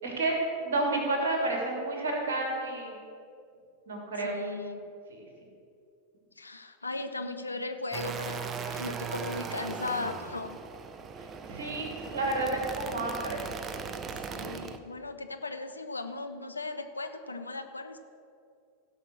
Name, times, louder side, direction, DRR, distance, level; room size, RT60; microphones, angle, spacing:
voice 1, 0.0-0.4 0.6-2.9 3.9-4.3 5.1-5.2 11.2-13.4, right 2 dB, 60° right, 0 dB, 2.9 m, -31 dB
voice 2, 4.2-4.9 6.4-10.6 14.3-18.0, left 3 dB, 80° left, 7 dB, 0.7 m, -37 dB
sound 1, 7.9-14.8, right 5 dB, 25° right, 0.6 m, -38 dB
16.5 x 5.7 x 6.3 m, 2.4 s
figure-of-eight pair, 90°, 0 cm